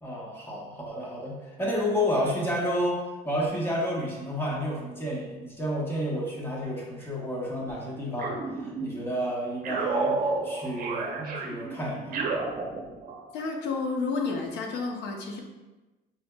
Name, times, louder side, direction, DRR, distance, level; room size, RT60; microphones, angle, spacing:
voice 1, 0.0-12.2, equal, 15° left, -4 dB, 1.2 m, -31 dB
zarkovox lo, 8.2-9.2 9.6-13.3, right 3 dB, 55° right, 0.6 m, -31 dB
voice 2, 13.3-15.4, left 4 dB, 85° left, 2 dB, 0.7 m, -30 dB
6.0 x 2.7 x 2.3 m, 1.1 s
cardioid pair, 110°, 17 cm